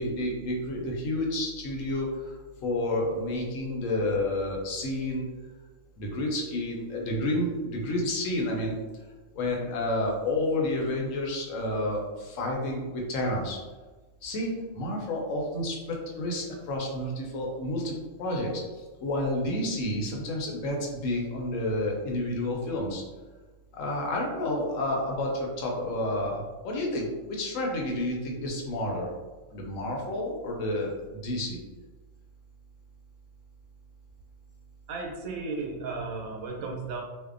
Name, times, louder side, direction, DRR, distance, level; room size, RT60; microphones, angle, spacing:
voice 1, 0.0-2.3 2.6-5.3 6.0-8.7 9.3-13.6 14.2-23.0 23.7-29.1 29.5-31.6, left 1 dB, 70° left, -1 dB, 0.9 m, -30 dB
voice 2, 34.9-37.0, right 3 dB, 80° right, 0 dB, 1.0 m, -34 dB
2.6 x 2.0 x 2.4 m, 1.3 s
omnidirectional pair, 1.4 m